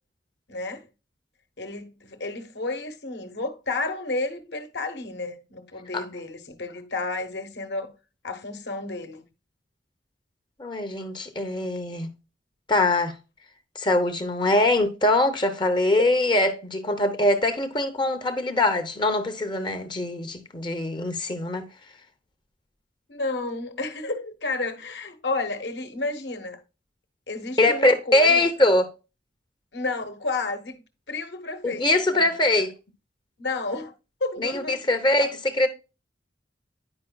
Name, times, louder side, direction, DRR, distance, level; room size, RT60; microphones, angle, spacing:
voice 1, 0.5-0.9 1.6-7.9 8.2-9.2 23.1-26.6 27.3-28.5 29.7-30.8 31.1-32.3 33.4-33.9 34.2-34.9, left 3 dB, 65° left, 1.0 m, -31 dB
voice 2, 10.6-12.1 12.7-13.2 13.8-21.7 27.6-28.9 31.6-32.7 34.4-35.7, left 2 dB, 25° left, 0.6 m, -22 dB
9.7 x 5.1 x 2.2 m
head